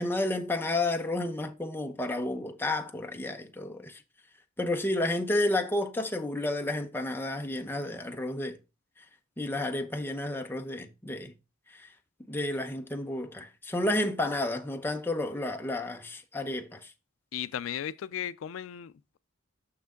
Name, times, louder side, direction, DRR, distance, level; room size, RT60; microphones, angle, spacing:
voice 1, 0.0-4.0 4.6-8.6 9.4-11.3 12.3-16.8, left 1 dB, 10° left, 0.8 m, -31 dB
voice 2, 17.3-18.9, left 9 dB, 75° left, 0.4 m, -35 dB
6.5 x 5.8 x 3.6 m
head